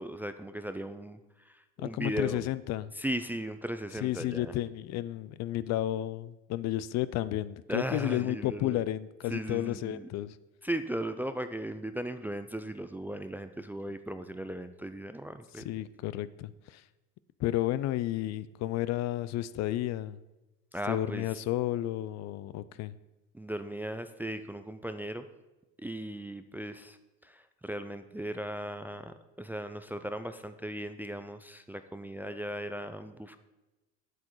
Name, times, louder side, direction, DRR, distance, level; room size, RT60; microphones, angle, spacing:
voice 1, 0.0-2.4 3.0-4.5 7.7-8.8 9.3-10.1 10.6-15.7 20.7-21.3 23.3-25.3 25.8-27.0 27.2-33.4, right 1 dB, 5° right, 9 dB, 0.3 m, -37 dB
voice 2, 1.8-2.9 4.0-10.4 15.6-16.8 17.4-20.2 20.9-23.0, left 14 dB, 55° left, 17 dB, 0.5 m, -32 dB
8.0 x 7.5 x 4.6 m, 1.1 s
cardioid pair, 110°, 32 cm